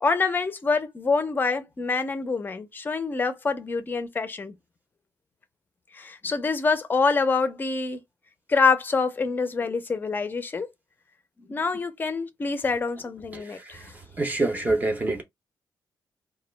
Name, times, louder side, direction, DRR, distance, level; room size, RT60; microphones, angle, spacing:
voice 1, 0.0-4.5 5.9-8.0 8.5-10.7 11.5-13.9, left 4 dB, 25° left, 0.5 m, -26 dB
voice 2, 13.3-13.8 14.2-15.2, right 2 dB, 20° right, 0.6 m, -26 dB
2.2 x 2.0 x 3.1 m
wide cardioid pair, 140°, 7 cm